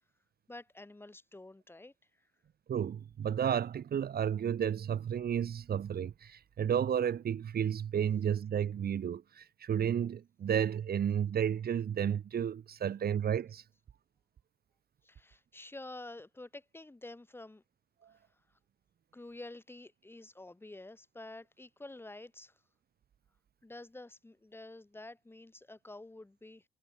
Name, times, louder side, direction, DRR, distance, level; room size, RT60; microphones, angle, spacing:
voice 1, 0.5-1.9 15.0-17.6 19.1-22.5 23.6-26.6, left 2 dB, 10° left, 3.3 m, -49 dB
voice 2, 2.7-13.6, right 8 dB, 50° right, 1.2 m, -32 dB
cardioid pair, 145°, 21 cm